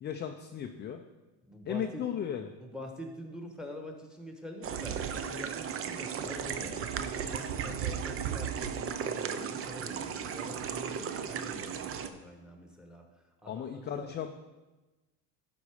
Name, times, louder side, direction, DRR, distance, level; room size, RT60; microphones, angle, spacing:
voice 1, 0.0-1.0 1.7-2.5 13.5-14.3, left 8 dB, 25° left, 5 dB, 0.5 m, -36 dB
voice 2, 1.4-2.1 2.6-14.1, equal, ahead, 3 dB, 1.2 m, -45 dB
sound 1, 4.6-12.1, right 7 dB, 35° right, 0.5 m, -35 dB
12.0 x 4.2 x 4.9 m, 1.1 s
cardioid pair, 125°, 40 cm